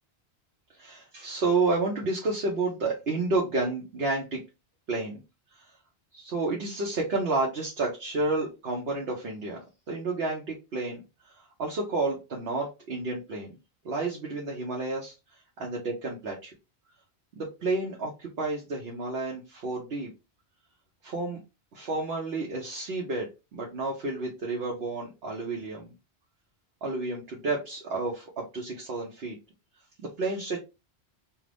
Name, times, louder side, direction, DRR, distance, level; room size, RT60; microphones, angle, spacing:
voice 1, 0.7-4.4 4.9-5.2 5.5-5.7 6.1-9.6 9.9-11.0 11.3-13.5 13.8-16.5 17.3-20.1 21.0-21.4 21.7-25.9 26.8-29.4 30.0-30.6, right 3 dB, 70° right, -2 dB, 1.0 m, -30 dB
2.6 x 2.5 x 3.3 m, 0.27 s
omnidirectional pair, 1.1 m